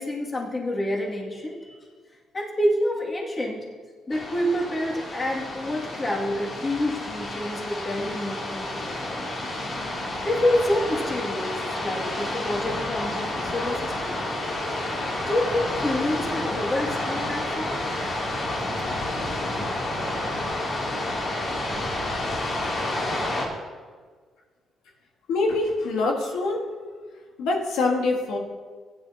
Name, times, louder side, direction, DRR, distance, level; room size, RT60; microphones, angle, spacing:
voice 1, 0.0-1.9 2.3-3.6 4.1-9.2 10.2-14.1 15.3-17.8, left 1 dB, 30° left, -3 dB, 2.6 m, -28 dB
sound 1, 4.1-23.5, left 1 dB, 55° left, 3.1 m, -30 dB
voice 2, 25.3-26.6 27.4-28.4, left 3 dB, 90° left, 1 dB, 1.7 m, -24 dB
15.5 x 10.0 x 3.0 m, 1.5 s
cardioid pair, 90°, 0 cm